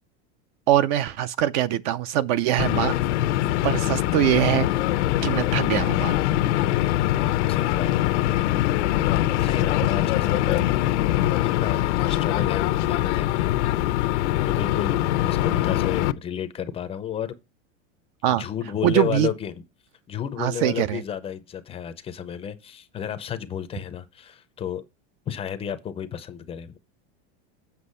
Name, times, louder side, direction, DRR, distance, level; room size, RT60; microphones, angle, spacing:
voice 1, 0.7-3.0 3.6-4.7 5.2-6.2 18.2-18.4 18.8-19.3 20.4-21.0, right 12 dB, 45° right, 0.5 m, -22 dB
sound 1, 2.6-16.1, left 14 dB, 85° left, 0.8 m, -23 dB
voice 2, 7.5-8.1 9.4-10.9 11.4-13.5 14.4-17.3 18.3-19.6 20.1-24.8 25.3-26.8, left 9 dB, 15° left, 0.5 m, -32 dB
8.2 x 5.9 x 5.4 m
supercardioid pair, 160°, 34 cm